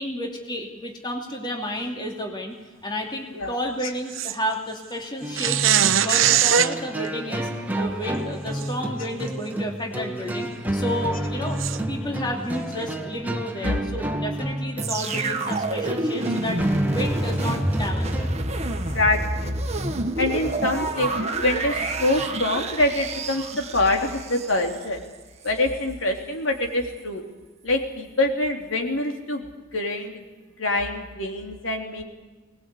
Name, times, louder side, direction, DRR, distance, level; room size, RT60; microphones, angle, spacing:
voice 1, 0.0-2.5 2.8-7.5 7.8-16.6 16.9-18.3, equal, 25° left, 1 dB, 2.7 m, -31 dB
sound 1, 4.1-4.4 5.4-6.7 8.6-8.7 9.3-9.4 11.6-11.8, right 9 dB, 80° right, 0.8 m, -20 dB
sound 2, 5.2-18.3, right 1 dB, 10° right, 1.8 m, -30 dB
voice 2, 13.6-14.0 18.7-19.7 20.2-25.0 25.4-27.2 27.6-30.2 30.6-32.0, left 2 dB, 75° left, 2 dB, 3.2 m, -25 dB
sound 3, 14.8-24.8 25.4-25.5, right 2 dB, 35° right, 1.6 m, -28 dB
21.5 x 20.0 x 8.4 m, 1.2 s
head